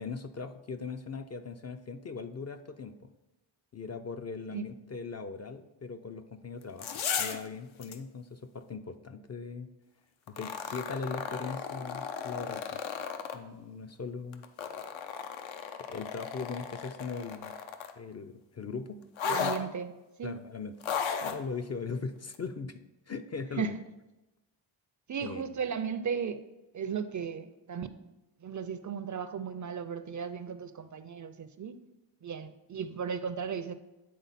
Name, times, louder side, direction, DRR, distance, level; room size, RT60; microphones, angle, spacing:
voice 1, 0.0-3.1 3.7-6.9 7.2-9.7 10.3-12.8 13.3-14.4 15.9-17.5 18.0-19.0 19.3-19.7 20.2-20.7 21.2-23.8 25.2-25.4, left 4 dB, 35° left, 8 dB, 0.4 m, -39 dB
sound 1, 6.6-7.5 7.8-8.0 10.3-13.4 14.3-18.0 19.2-19.6 20.8-21.4 22.3-22.4, left 7 dB, 75° left, 0.7 m, -35 dB
voice 2, 19.2-19.9 20.2-20.4 23.6-23.7 25.1-26.4 26.7-27.9 28.4-31.8 32.2-33.7, right 7 dB, 40° right, 12 dB, 0.4 m, -35 dB
9.5 x 3.7 x 4.1 m, 1.0 s
cardioid pair, 75°, 47 cm